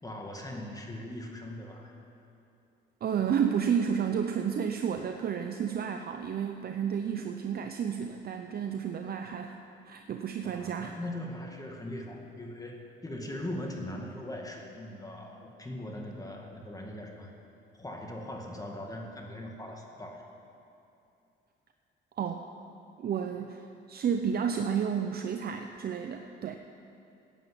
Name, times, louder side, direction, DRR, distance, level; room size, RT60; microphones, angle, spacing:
voice 1, 0.0-2.0 10.4-17.3 17.8-20.3, left 1 dB, 20° left, 1 dB, 2.0 m, -40 dB
voice 2, 3.0-9.5 9.8-11.0 22.2-22.5 23.0-26.6, right 7 dB, 50° right, 5 dB, 0.7 m, -31 dB
13.0 x 9.2 x 8.0 m, 2.7 s
cardioid pair, 90°, 20 cm